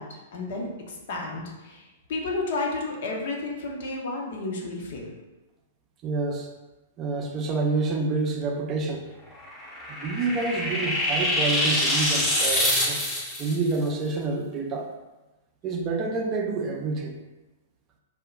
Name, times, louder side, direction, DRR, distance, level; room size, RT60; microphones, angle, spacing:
voice 1, 0.0-5.1, left 3 dB, 65° left, -1 dB, 0.6 m, -32 dB
voice 2, 6.0-6.5 7.0-9.1 9.9-13.0 13.4-14.9 15.6-17.2, right 3 dB, 30° right, 2 dB, 0.4 m, -28 dB
sound 1, 9.4-13.6, left 1 dB, 15° left, 0.6 m, -25 dB
2.2 x 2.1 x 3.7 m, 1.1 s
hypercardioid pair, 115°, 0 cm